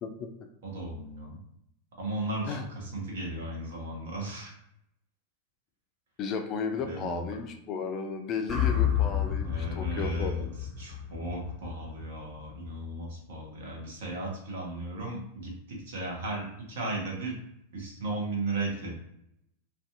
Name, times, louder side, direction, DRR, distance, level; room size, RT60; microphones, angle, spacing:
voice 1, 0.6-1.4 2.0-4.5 6.8-7.3 9.4-10.5 10.8-17.4 17.7-18.9, right 2 dB, 60° right, -1 dB, 0.8 m, -35 dB
voice 2, 6.2-10.5, left 5 dB, 35° left, 5 dB, 0.3 m, -34 dB
sound 1, 8.5-12.7, left 9 dB, 5° right, 0.6 m, -30 dB
2.5 x 2.2 x 2.5 m, 0.78 s
figure-of-eight pair, 90°, 0 cm